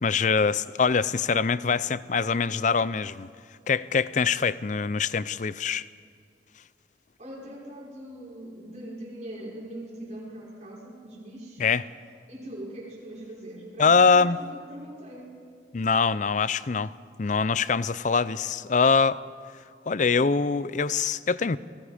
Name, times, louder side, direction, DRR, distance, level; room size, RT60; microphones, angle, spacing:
voice 1, 0.0-3.3 3.7-5.9 11.6-11.8 13.8-14.4 15.7-16.9 17.2-19.2 19.9-21.6, left 5 dB, 45° left, 17 dB, 0.5 m, -23 dB
voice 2, 7.2-11.6 12.3-15.3, right 1 dB, 40° right, -3 dB, 5.5 m, -41 dB
29.5 x 19.5 x 5.0 m, 2.1 s
head